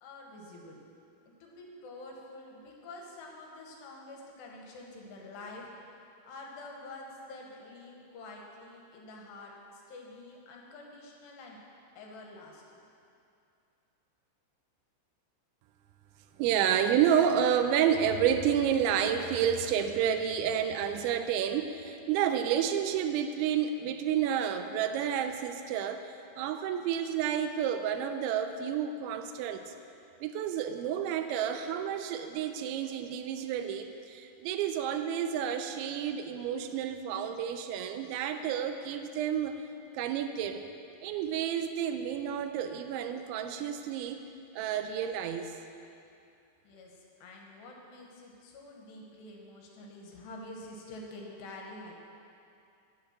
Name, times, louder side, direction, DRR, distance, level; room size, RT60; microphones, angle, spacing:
voice 1, 0.0-0.8 1.4-11.6 12.0-12.6 46.6-51.9, left 2 dB, 75° left, -1 dB, 3.2 m, -47 dB
voice 2, 16.4-29.7 30.2-39.6 39.9-40.7 41.0-44.3 44.5-45.5, right 8 dB, 85° right, 8 dB, 3.0 m, -30 dB
8.8 x 8.2 x 7.2 m, 2.6 s
omnidirectional pair, 5.2 m